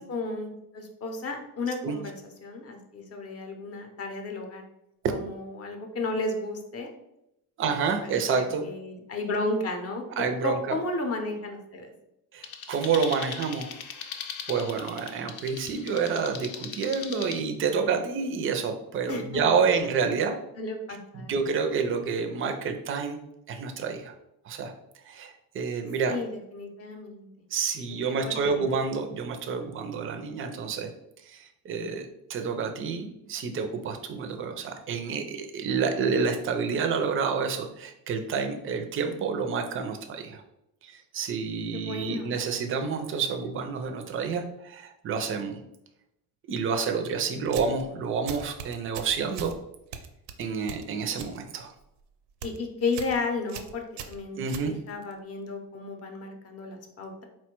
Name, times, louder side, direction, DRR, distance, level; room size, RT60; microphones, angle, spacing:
voice 1, 0.0-2.2 2.4-4.6 5.1-6.9 7.6-7.7 8.0-10.0 10.4-11.9 19.1-19.4 19.7-19.9 20.6-21.3 26.1-27.3 27.9-28.8 41.7-42.4 47.4-47.6 52.4-57.2, left 3 dB, 40° left, 4 dB, 0.6 m, -33 dB
voice 2, 7.6-8.6 10.2-10.6 12.3-13.7 14.5-20.4 21.1-23.2 23.5-24.1 24.5-24.7 25.1-26.2 27.5-30.9 31.3-40.4 40.8-45.6 46.5-49.5 50.4-51.7 54.3-54.7, right 5 dB, 35° right, 6 dB, 0.4 m, -29 dB
sound 1, 12.4-17.4, left 7 dB, 80° left, 0.6 m, -39 dB
sound 2, 47.4-47.8 48.3-49.6 49.9-51.4 51.7-52.0 52.3-52.6 52.9-53.2 53.5-55.1, right 7 dB, 90° right, 0.6 m, -40 dB
4.4 x 2.2 x 4.3 m, 0.84 s
cardioid pair, 180°, 39 cm